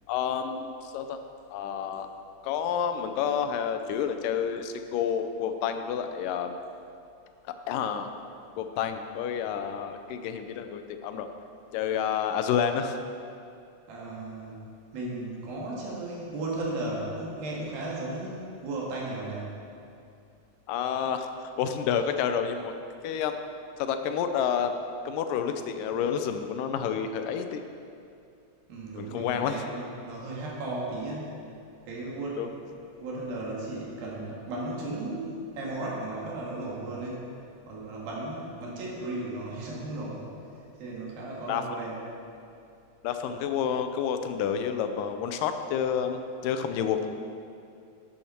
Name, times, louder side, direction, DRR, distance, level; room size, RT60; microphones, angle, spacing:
voice 1, 0.1-1.2 1.5-2.1 2.4-6.6 7.7-8.1 8.6-11.3 11.7-13.0 20.7-22.7 23.0-23.4 23.8-24.8 25.1-27.6 29.0-29.6 32.4-32.5 41.5-41.8 43.0-47.1, left 8 dB, 80° left, 7 dB, 2.2 m, -29 dB
voice 2, 13.9-14.6 14.9-19.6 28.7-31.4 31.9-32.4 32.7-37.3 37.7-42.0, right 2 dB, 85° right, -4 dB, 3.7 m, -35 dB
12.0 x 9.1 x 4.3 m, 2.5 s
omnidirectional pair, 4.0 m